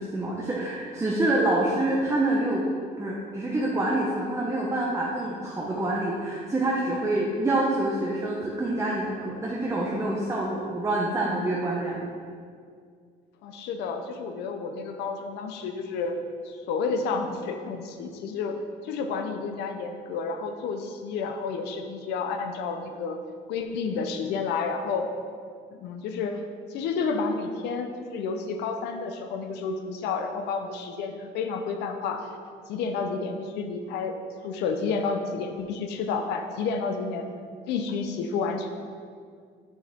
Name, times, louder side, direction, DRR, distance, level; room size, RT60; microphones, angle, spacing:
voice 1, 0.0-2.6 3.0-12.1, right 1 dB, 15° right, -3 dB, 0.8 m, -26 dB
voice 2, 13.4-16.2 16.4-18.6 18.8-23.2 23.5-25.1 25.7-26.4 26.7-32.3 32.7-34.2 34.4-37.3 37.7-38.7, left 4 dB, 85° left, 6 dB, 0.7 m, -30 dB
6.5 x 6.3 x 3.5 m, 2.2 s
cardioid pair, 110°, 17 cm